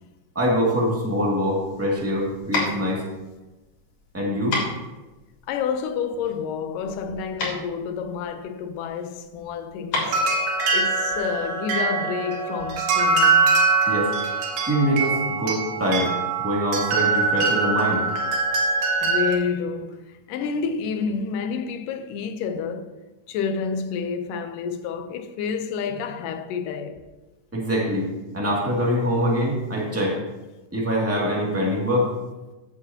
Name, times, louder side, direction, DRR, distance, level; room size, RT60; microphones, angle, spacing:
voice 1, 0.3-3.0 4.1-4.6 13.9-14.1 14.6-16.1 16.4-18.0 27.5-28.1 28.3-30.2 30.7-32.1, equal, 5° right, 1.7 m, -24 dB
sound 1, 1.6-11.4, left 2 dB, 70° left, 4.5 m, -32 dB
voice 2, 5.5-10.2 10.7-13.5 19.0-23.0 23.3-27.0, left 6 dB, 85° left, 2.4 m, -29 dB
sound 2, 10.0-19.3, right 4 dB, 85° right, 3.1 m, -23 dB
14.5 x 8.3 x 2.9 m
omnidirectional pair, 3.7 m